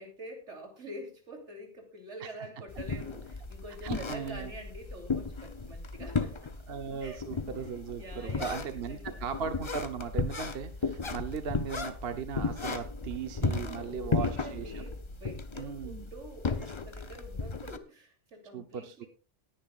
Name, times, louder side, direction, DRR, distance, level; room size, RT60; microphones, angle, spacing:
voice 1, 0.0-6.5 7.0-7.2 8.0-9.2 13.5-19.1, right 1 dB, 85° right, 3 dB, 3.6 m, -46 dB
sound 1, 2.7-17.8, left 4 dB, 30° left, 0.8 m, -35 dB
voice 2, 3.8-4.5 6.7-14.8 15.6-16.1 18.5-19.1, right 7 dB, 60° right, 8 dB, 1.1 m, -38 dB
19.0 x 10.5 x 2.4 m, 0.33 s
omnidirectional pair, 1.2 m